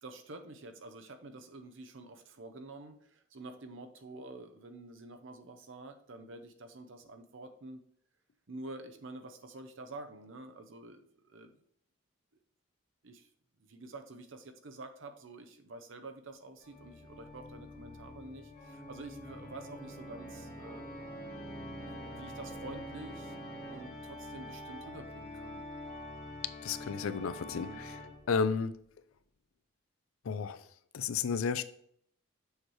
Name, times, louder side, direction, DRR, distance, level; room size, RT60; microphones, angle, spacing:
voice 1, 0.0-7.8 8.5-11.5 13.0-13.3 13.6-20.8 21.8-23.3 23.7-25.6 27.5-27.9, right 2 dB, 70° right, 0.7 m, -48 dB
Organ, 16.6-28.5, left 1 dB, 45° left, 1.6 m, -45 dB
voice 2, 26.6-27.7 28.3-28.7 30.3-30.6 30.9-31.6, left 5 dB, 85° left, 0.4 m, -32 dB
6.5 x 3.1 x 4.7 m
head